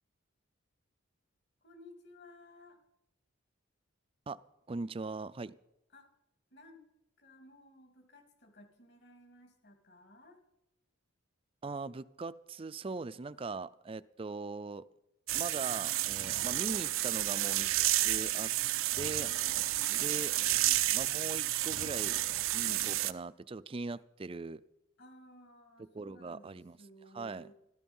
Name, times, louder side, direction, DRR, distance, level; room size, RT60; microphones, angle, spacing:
voice 1, 1.6-2.8 5.9-6.1 6.5-6.9 7.2-10.4 19.2-20.0 20.5-21.0 22.7-23.0 25.0-27.6, equal, 55° left, 2.5 m, -57 dB
voice 2, 4.7-5.6 11.6-14.8 15.3-18.5 19.0-19.3 20.0-20.3 20.9-22.2 22.5-24.6 25.9-26.8 27.1-27.5, right 3 dB, 25° right, 0.4 m, -40 dB
sound 1, 15.3-23.1, right 15 dB, 80° right, 0.6 m, -31 dB
14.0 x 13.0 x 5.4 m
head